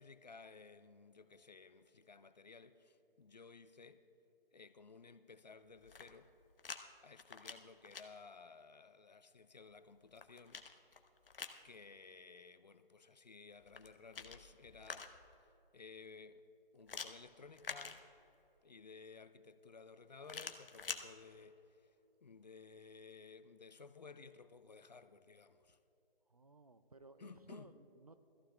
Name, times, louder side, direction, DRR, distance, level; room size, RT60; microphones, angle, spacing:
voice 1, 0.0-4.0 4.5-6.3 7.0-10.6 11.6-15.1 15.7-16.4 16.7-18.0 18.6-21.9 22.2-25.8 27.2-27.7, left 4 dB, 45° left, 0.5 m, -56 dB
sound 1, 5.7-6.8 7.1-8.0 9.8-11.6 13.6-15.4 16.9-18.5 20.2-21.0, left 5 dB, 70° left, 1.0 m, -48 dB
voice 2, 26.3-28.2, right 3 dB, 40° right, 0.4 m, -59 dB
16.5 x 14.5 x 3.4 m
figure-of-eight pair, 165°, 29 cm